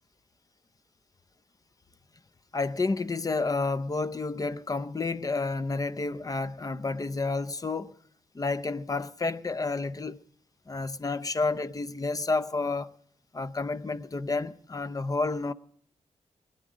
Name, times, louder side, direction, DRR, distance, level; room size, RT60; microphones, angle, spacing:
voice 1, 2.5-8.0 8.3-10.2 10.7-12.9 13.3-15.5, left 3 dB, 30° left, 0.6 m, -30 dB
20.0 x 10.5 x 5.0 m
cardioid pair, 60°, 12 cm